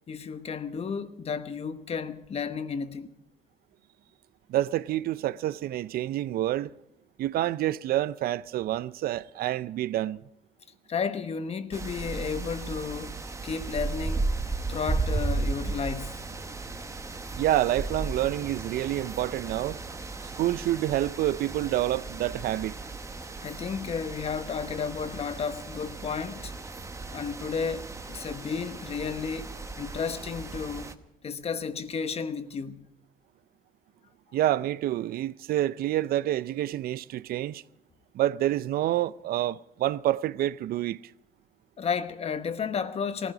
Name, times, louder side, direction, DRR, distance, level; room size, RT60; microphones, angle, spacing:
voice 1, 0.1-3.1 10.9-14.3 14.7-16.3 23.4-26.5 27.1-29.5 29.8-31.0 31.2-32.9 41.8-43.3, left 6 dB, 35° left, 1.0 m, -33 dB
voice 2, 4.5-6.7 7.2-10.2 17.4-19.8 20.4-22.8 34.3-37.6 38.1-41.0, right 13 dB, 65° right, 0.5 m, -28 dB
sound 1, 11.7-30.9, right 3 dB, 15° right, 0.9 m, -35 dB
18.5 x 14.5 x 5.0 m
cardioid pair, 110°, 17 cm